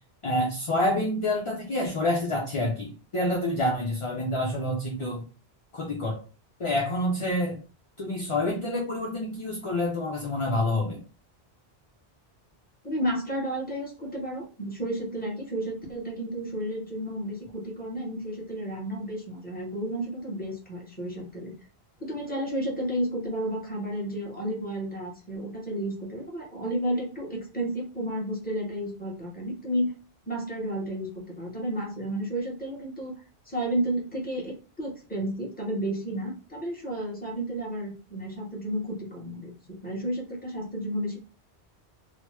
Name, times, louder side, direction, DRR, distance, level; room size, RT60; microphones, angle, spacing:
voice 1, 0.2-5.2 5.7-6.2 6.6-7.6 8.0-11.0, left 1 dB, 40° left, -1 dB, 0.5 m, -27 dB
voice 2, 12.8-21.5 22.0-30.0 30.3-41.2, right 1 dB, 10° left, -3 dB, 1.1 m, -32 dB
3.1 x 2.1 x 3.2 m, 0.35 s
omnidirectional pair, 1.1 m